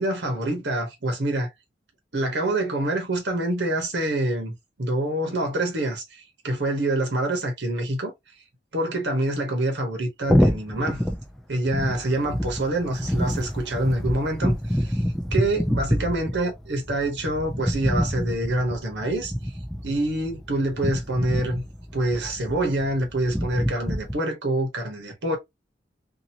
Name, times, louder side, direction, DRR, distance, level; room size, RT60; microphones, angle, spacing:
voice 1, 0.0-1.5 2.1-8.1 8.7-11.0 11.5-15.0 15.3-19.5 19.8-21.6 21.9-25.4, right 1 dB, 80° right, 1.0 m, -26 dB
sound 1, 10.2-24.1, equal, ahead, 0.4 m, -27 dB
2.8 x 2.6 x 2.7 m
head